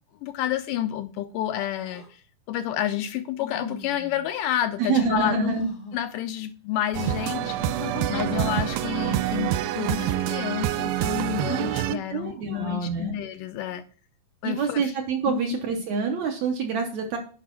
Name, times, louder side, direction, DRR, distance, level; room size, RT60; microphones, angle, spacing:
voice 1, 0.2-2.2 2.5-5.6 5.9-7.6 8.1-13.8 14.4-15.0 15.3-15.4, left 11 dB, 80° left, 2.0 m, -29 dB
sound 1, 1.8-2.1 3.4-4.3 5.4-6.0 7.3-9.1 9.8-10.2 11.4-11.9, left 3 dB, 50° left, 1.2 m, -39 dB
voice 2, 4.8-5.7 11.5-13.1 14.4-17.2, right 5 dB, 70° right, 1.8 m, -27 dB
sound 2, 6.9-12.0, right 12 dB, 85° right, 2.3 m, -27 dB
8.3 x 5.5 x 4.5 m
omnidirectional pair, 4.1 m